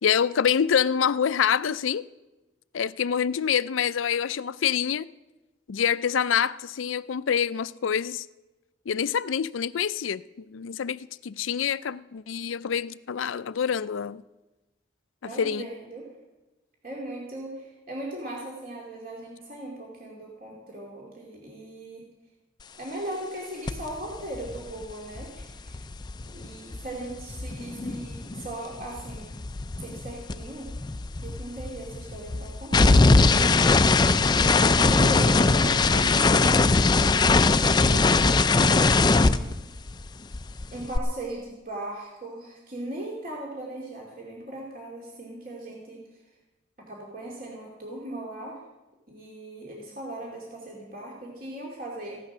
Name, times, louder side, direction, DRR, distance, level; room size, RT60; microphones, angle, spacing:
voice 1, 0.0-2.0 2.7-5.1 5.7-8.3 8.9-14.2 15.2-15.7, left 8 dB, 90° left, 0.4 m, -26 dB
voice 2, 15.2-16.1 16.8-22.1 22.7-25.8 26.3-29.3 29.8-30.7 31.2-33.5 34.3-36.4 37.6-39.5 40.7-46.0 46.8-48.6 49.1-52.2, right 1 dB, 45° right, 2.6 m, -38 dB
sound 1, 23.7-23.9 24.1-28.5 28.8-40.1 40.3-41.0, left 3 dB, 20° left, 0.4 m, -21 dB
15.5 x 11.5 x 6.1 m
head